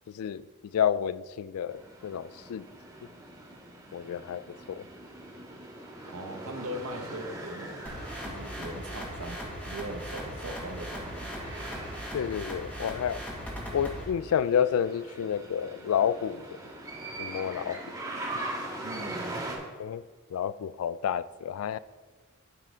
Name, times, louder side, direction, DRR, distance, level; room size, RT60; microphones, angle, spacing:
voice 1, 0.1-2.7 3.9-4.4 4.7-4.9 12.1-13.2 13.7-16.6 17.2-18.0 19.8-20.0 20.3-21.8, left 8 dB, 80° left, 17 dB, 0.3 m, -30 dB
sound 1, 1.7-19.6, right 1 dB, 20° right, 1.8 m, -42 dB
voice 2, 6.0-7.8 8.2-11.3 18.8-19.6, right 1 dB, 80° right, 5 dB, 1.0 m, -40 dB
sound 2, 7.9-14.1, equal, 5° left, 1.7 m, -39 dB
9.8 x 7.4 x 3.7 m, 1.4 s
head